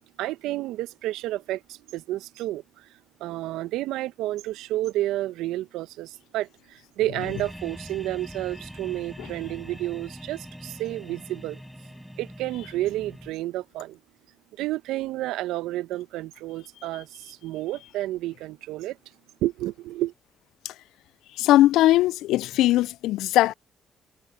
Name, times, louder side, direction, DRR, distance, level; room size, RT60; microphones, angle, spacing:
voice 1, 0.2-2.9 3.2-11.6 12.2-14.0 14.6-19.0 19.4-20.1, right 15 dB, 75° right, 1.2 m, -30 dB
sound 1, 7.2-13.3, equal, ahead, 5.8 m, -42 dB
voice 2, 21.3-23.5, left 15 dB, 75° left, 0.5 m, -20 dB
hypercardioid pair, 45°, 0 cm